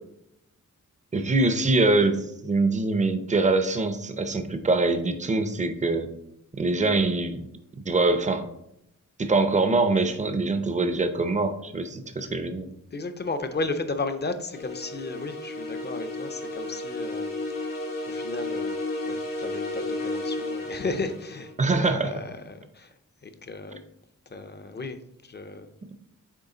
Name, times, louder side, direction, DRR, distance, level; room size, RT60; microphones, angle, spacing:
voice 1, 1.1-6.1 6.6-7.4 7.8-8.4 9.2-12.7 21.6-22.1, right 3 dB, 25° right, 8 dB, 0.5 m, -24 dB
voice 2, 12.9-17.7 18.1-18.8 19.1-22.9 23.2-23.8 24.3-25.7, left 3 dB, 35° left, 9 dB, 0.5 m, -34 dB
sound 1, 14.5-21.5, left 2 dB, 85° left, 1.3 m, -33 dB
8.3 x 3.2 x 3.8 m, 0.80 s
wide cardioid pair, 170°, 32 cm